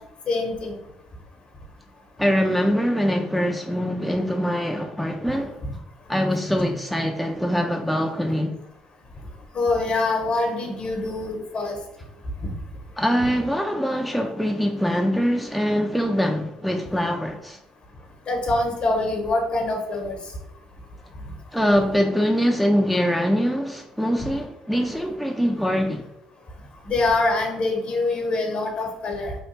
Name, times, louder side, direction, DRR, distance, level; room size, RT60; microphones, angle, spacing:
voice 1, 0.3-0.8 9.5-11.8 18.3-20.2 21.5-21.6 26.8-29.3, left 2 dB, 50° left, 0.9 m, -24 dB
voice 2, 2.2-5.6 6.1-8.6 13.0-17.6 21.5-26.0, equal, ahead, 0.4 m, -23 dB
3.1 x 2.3 x 3.2 m
supercardioid pair, 65°, 2 cm